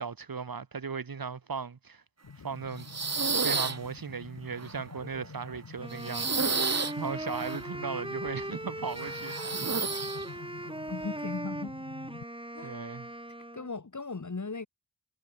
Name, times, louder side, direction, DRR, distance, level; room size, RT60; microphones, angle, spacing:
voice 1, 0.0-2.0 2.4-2.9 3.3-9.7 12.6-13.1, right 5 dB, 70° right, 2.6 m, -37 dB
sound 1, 2.2-12.2, left 5 dB, 75° left, 4.6 m, -49 dB
sound 2, 2.8-3.8 4.6-5.6 5.9-7.6 9.0-10.3, right 4 dB, 45° right, 1.6 m, -31 dB
Wind instrument woodwind instrument, 5.8-13.7, right 1 dB, 15° right, 3.6 m, -39 dB
voice 2, 10.9-11.7 12.5-12.8 13.5-14.7, left 4 dB, 50° left, 4.3 m, -37 dB
cardioid pair, 55°, 36 cm